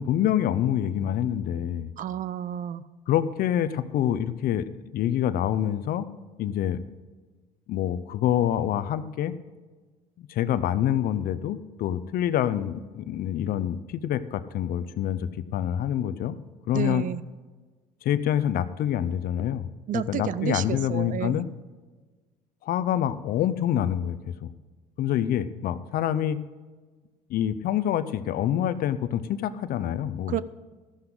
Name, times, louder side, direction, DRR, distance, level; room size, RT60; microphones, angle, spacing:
voice 1, 0.0-1.9 3.1-6.1 6.4-6.8 7.7-9.3 10.2-16.4 16.7-17.0 18.0-19.7 19.9-21.5 22.6-24.5 25.0-26.4 27.3-30.4, left 10 dB, 65° left, 14 dB, 0.7 m, -26 dB
voice 2, 2.0-2.8 16.7-17.2 19.9-21.4 30.3-30.4, right 10 dB, 55° right, 17 dB, 0.6 m, -30 dB
13.0 x 11.5 x 3.9 m, 1.4 s
supercardioid pair, 80°, 16 cm